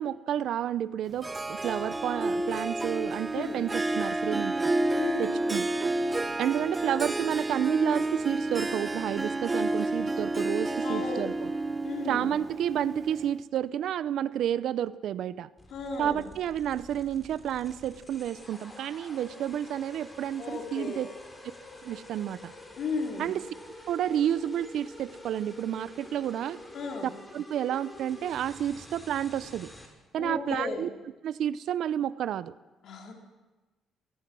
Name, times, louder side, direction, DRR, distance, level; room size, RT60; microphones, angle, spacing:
voice 1, 0.0-4.7 5.2-5.7 6.4-11.5 12.1-15.5 16.0-21.1 21.8-22.5 23.2-23.5 23.9-26.6 27.3-29.7 30.1-30.9 31.2-32.5, right 10 dB, 70° right, 17 dB, 0.6 m, -30 dB
Harp, 1.2-13.4, right 2 dB, 25° right, 0.9 m, -30 dB
voice 2, 4.9-5.4 10.8-11.3 11.8-12.3 15.7-16.2 20.4-21.0 22.8-23.3 26.7-27.1 30.2-30.8 32.8-33.1, left 4 dB, 65° left, 1 dB, 3.9 m, -34 dB
sound 1, 15.6-29.9, left 1 dB, 15° left, 5.8 m, -48 dB
26.5 x 18.5 x 6.2 m, 1.1 s
cardioid pair, 80°, 0 cm